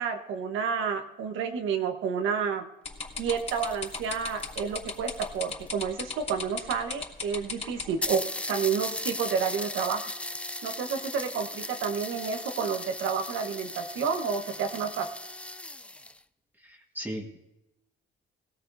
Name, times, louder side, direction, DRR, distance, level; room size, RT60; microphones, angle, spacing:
voice 1, 0.0-2.6 3.2-10.0 10.6-15.1, right 6 dB, 90° right, 5 dB, 1.3 m, -30 dB
sound 1, 2.8-8.0, left 4 dB, 35° left, 3.4 m, -35 dB
sound 2, 3.0-5.8 6.7-6.8 7.0-7.1 7.4-7.5 8.0-16.2, left 1 dB, 5° left, 0.4 m, -37 dB
voice 2, 16.6-17.4, right 1 dB, 10° right, 0 dB, 1.6 m, -37 dB
18.0 x 17.0 x 2.7 m, 0.96 s
cardioid pair, 90°, 20 cm